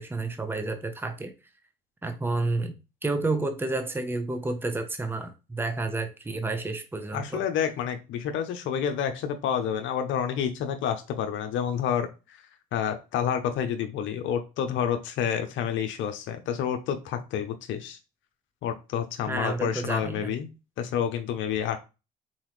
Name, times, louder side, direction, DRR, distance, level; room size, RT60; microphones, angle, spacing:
voice 1, 0.0-1.3 2.0-2.7 3.0-7.4 19.3-20.3, right 2 dB, 10° right, 0.8 m, -30 dB
voice 2, 7.1-12.1 12.7-18.0 18.6-20.5 20.8-21.8, left 8 dB, 75° left, 0.7 m, -29 dB
4.2 x 3.9 x 3.1 m
supercardioid pair, 75°, 20 cm